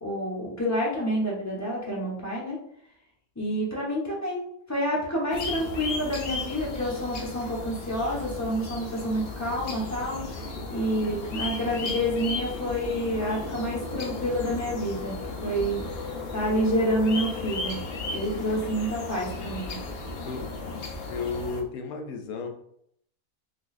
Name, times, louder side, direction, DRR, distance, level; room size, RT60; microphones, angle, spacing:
voice 1, 0.0-2.6 3.4-15.8 16.3-17.8 18.1-19.8, equal, 15° left, -5 dB, 0.8 m, -28 dB
sound 1, 5.3-21.6, left 3 dB, 90° left, 0.5 m, -35 dB
voice 2, 21.1-22.5, left 4 dB, 70° left, 4 dB, 1.0 m, -33 dB
4.0 x 2.7 x 2.5 m, 0.71 s
omnidirectional pair, 1.7 m